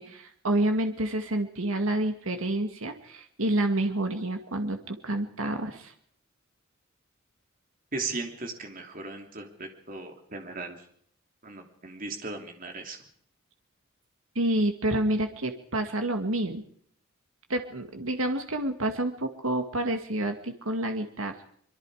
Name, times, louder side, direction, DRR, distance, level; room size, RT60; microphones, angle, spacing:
voice 1, 0.0-5.9 14.4-16.6 17.5-21.3, right 1 dB, 80° right, 5 dB, 2.1 m, -28 dB
voice 2, 7.9-10.8 11.4-13.0, right 3 dB, 40° right, 3 dB, 3.1 m, -37 dB
25.5 x 22.5 x 5.0 m, 0.63 s
head